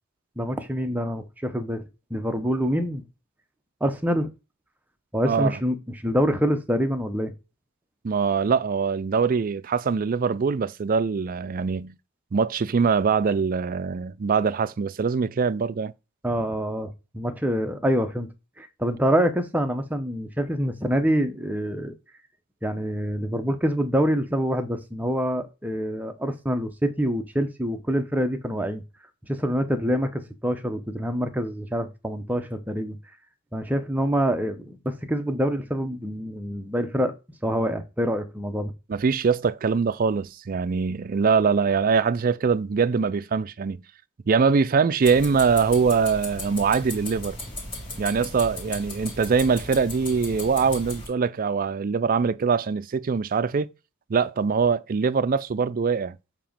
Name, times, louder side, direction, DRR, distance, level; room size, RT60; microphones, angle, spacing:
voice 1, 0.4-3.0 3.8-4.3 5.1-7.3 16.2-18.3 18.6-21.9 22.6-28.8 29.3-33.0 33.5-37.1 37.4-38.7, equal, 10° right, 0.8 m, -26 dB
voice 2, 5.2-5.6 8.0-11.9 12.3-15.9 38.9-43.8 44.3-47.4 48.0-53.7 54.1-56.2, right 5 dB, 40° right, 0.4 m, -23 dB
sound 1, 45.0-51.1, left 1 dB, 25° left, 2.4 m, -36 dB
7.5 x 3.0 x 5.1 m
head